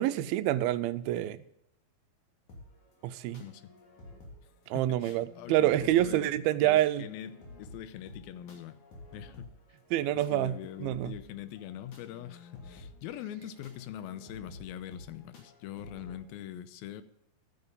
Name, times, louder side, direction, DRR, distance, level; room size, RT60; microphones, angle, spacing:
voice 1, 0.0-1.4 3.0-3.4 4.7-7.1 9.9-10.5 10.8-11.1, right 13 dB, 90° right, 2.5 m, -27 dB
sound 1, 2.5-16.2, left 2 dB, 55° left, 4.1 m, -52 dB
voice 2, 3.4-3.7 4.7-8.8 9.1-9.5 10.3-17.0, left 11 dB, 85° left, 2.6 m, -43 dB
12.5 x 9.7 x 5.3 m
omnidirectional pair, 4.2 m